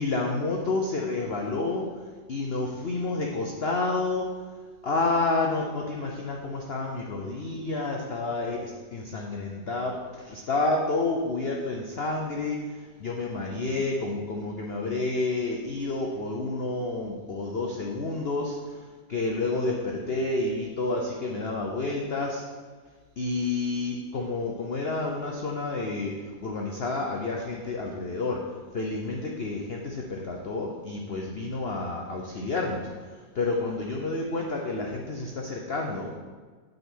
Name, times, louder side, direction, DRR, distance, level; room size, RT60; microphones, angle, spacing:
voice 1, 0.0-1.9 2.3-4.2 4.8-12.6 13.0-18.8 19.1-22.4 23.2-26.1 26.4-28.4 28.7-32.9 33.3-36.1, left 3 dB, 55° left, 0 dB, 0.7 m, -29 dB
8.6 x 4.0 x 6.2 m, 1.5 s
omnidirectional pair, 2.0 m